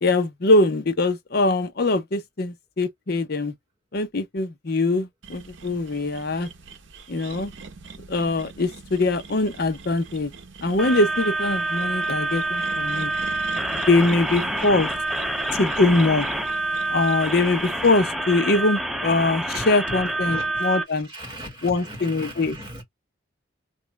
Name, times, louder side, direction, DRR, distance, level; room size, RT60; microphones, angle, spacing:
voice 1, 0.0-3.5 3.9-6.5 7.1-7.5 8.1-10.3 10.6-13.1 13.9-14.9 15.6-16.3 16.9-21.1 21.6-22.5, left 2 dB, 50° left, 0.6 m, -22 dB
sound 1, 5.2-17.9, right 4 dB, 65° right, 0.7 m, -42 dB
sound 2, 10.8-20.8, right 2 dB, ahead, 0.3 m, -27 dB
voice 2, 19.5-22.8, equal, 20° right, 1.9 m, -39 dB
3.0 x 2.5 x 3.3 m
head